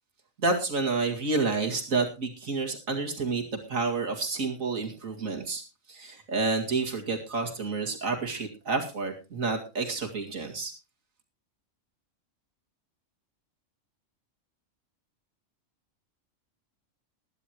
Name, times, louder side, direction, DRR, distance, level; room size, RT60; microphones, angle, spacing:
voice 1, 0.4-3.4 3.7-5.6 5.9-10.7, right 3 dB, 85° right, 2 dB, 2.6 m, -29 dB
21.0 x 10.5 x 3.0 m, 0.29 s
omnidirectional pair, 1.3 m